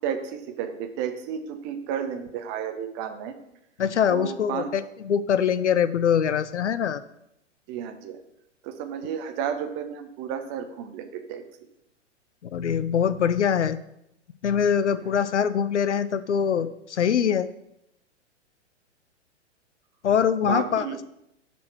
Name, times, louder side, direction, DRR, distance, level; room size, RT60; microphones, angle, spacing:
voice 1, 0.0-3.4 4.1-4.7 7.7-8.2 8.6-11.4 14.9-15.1 20.5-21.0, right 8 dB, 30° right, 7 dB, 0.8 m, -32 dB
voice 2, 3.8-7.0 12.5-13.8 14.4-17.5 20.0-20.8, left 8 dB, 70° left, 14 dB, 0.6 m, -23 dB
7.3 x 4.4 x 5.8 m, 0.80 s
figure-of-eight pair, 105°, 36 cm